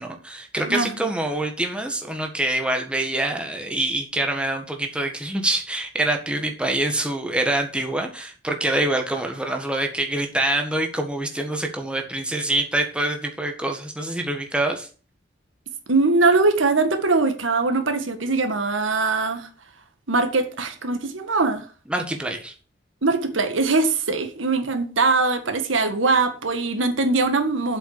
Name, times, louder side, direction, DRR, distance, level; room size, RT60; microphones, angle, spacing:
voice 1, 0.0-14.9 21.9-22.5, right 1 dB, 5° right, 1.6 m, -25 dB
voice 2, 15.9-19.5 20.1-21.7 23.0-27.8, right 3 dB, 80° right, 1.7 m, -21 dB
7.9 x 6.1 x 7.3 m
head